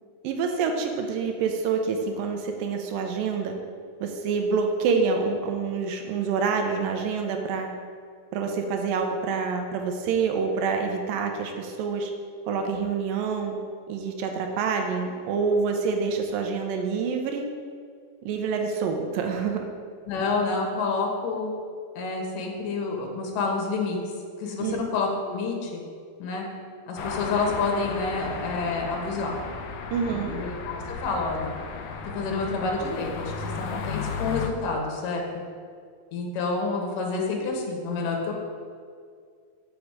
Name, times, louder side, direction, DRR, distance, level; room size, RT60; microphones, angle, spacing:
voice 1, 0.2-3.6 4.0-7.7 8.3-12.1 12.5-13.6 13.9-17.5 18.2-19.7 24.6-24.8 29.9-30.4, right 5 dB, 80° right, 4 dB, 2.3 m, -27 dB
voice 2, 20.1-21.5 22.0-24.0 24.4-25.8 26.2-26.4 26.9-29.4 30.1-31.5 32.1-35.2 36.1-38.3, left 3 dB, 70° left, 0 dB, 2.6 m, -28 dB
sound 1, 27.0-34.5, left 5 dB, 85° left, 1.8 m, -34 dB
7.0 x 6.4 x 4.7 m, 2.1 s
omnidirectional pair, 4.2 m